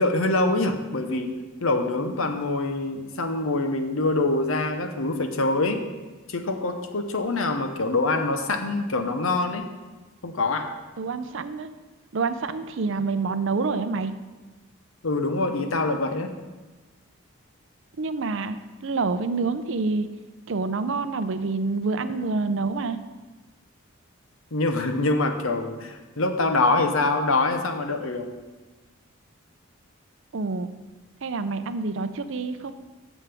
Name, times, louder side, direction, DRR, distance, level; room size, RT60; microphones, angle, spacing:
voice 1, 0.0-1.3 1.6-5.8 6.3-9.7 10.2-10.7 15.0-16.3 24.5-28.3, left 2 dB, 70° left, 7 dB, 0.9 m, -25 dB
voice 2, 11.0-11.7 12.1-14.1 18.0-20.1 20.5-23.0 30.3-30.7 31.2-32.7, right 4 dB, 60° right, 11 dB, 0.5 m, -27 dB
12.5 x 7.2 x 3.5 m, 1.2 s
head